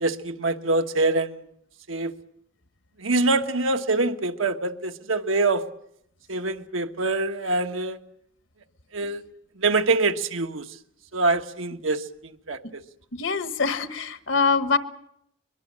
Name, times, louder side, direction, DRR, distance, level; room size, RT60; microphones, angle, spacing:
voice 1, 0.0-1.4 1.9-2.1 3.0-5.6 6.3-8.0 8.9-9.2 9.6-10.6 11.1-12.0 12.5-12.6, right 3 dB, 85° right, 6 dB, 1.3 m, -24 dB
voice 2, 13.1-14.8, left 4 dB, 70° left, 10 dB, 1.4 m, -24 dB
23.0 x 22.5 x 7.5 m, 0.75 s
head